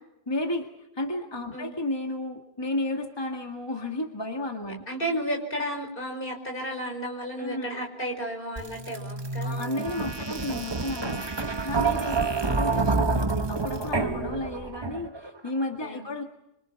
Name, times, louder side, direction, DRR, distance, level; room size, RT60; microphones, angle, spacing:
voice 1, 0.3-4.8 7.4-7.8 9.4-16.2, left 2 dB, 25° left, 2 dB, 1.9 m, -33 dB
voice 2, 4.9-9.6 10.1-10.2 12.0-12.4 15.8-16.1, equal, 60° left, 2 dB, 5.6 m, -33 dB
sound 1, 8.6-15.3, right 4 dB, 25° right, 1.1 m, -28 dB
26.0 x 24.0 x 6.0 m, 0.89 s
omnidirectional pair, 1.0 m